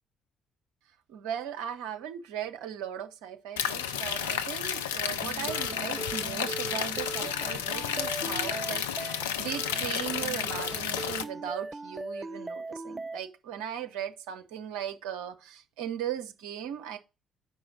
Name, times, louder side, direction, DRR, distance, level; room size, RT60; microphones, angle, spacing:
voice 1, 1.1-17.0, right 9 dB, 65° right, 0.8 m, -38 dB
sound 1, 3.6-11.2, left 8 dB, 75° left, 0.4 m, -32 dB
sound 2, 5.2-13.2, right 3 dB, 20° right, 0.3 m, -40 dB
6.0 x 4.8 x 5.9 m
figure-of-eight pair, 45°, 0 cm